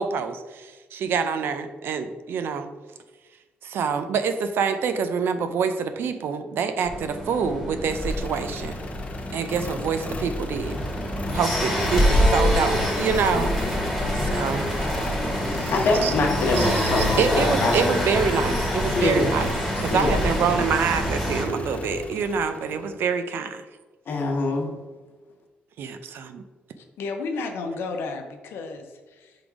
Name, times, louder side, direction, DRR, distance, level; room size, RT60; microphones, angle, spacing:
voice 1, 0.0-2.7 3.6-8.8 9.3-10.7 11.3-13.5 14.2-14.7 15.5-15.7 16.0-16.1 16.6-19.5 19.8-23.6 25.8-26.4, right 6 dB, 70° right, 9 dB, 0.5 m, -26 dB
sound 1, 6.9-21.5, equal, ahead, 1.6 m, -26 dB
sound 2, 7.9-23.0, left 3 dB, 35° left, 0.6 m, -36 dB
voice 2, 15.4-17.7 18.9-19.3 19.9-20.2 24.1-24.7, left 2 dB, 60° left, 0 dB, 1.3 m, -24 dB
voice 3, 26.8-29.5, left 3 dB, 80° left, 4 dB, 0.8 m, -33 dB
5.2 x 3.8 x 4.8 m, 1.3 s
cardioid pair, 105°, 4 cm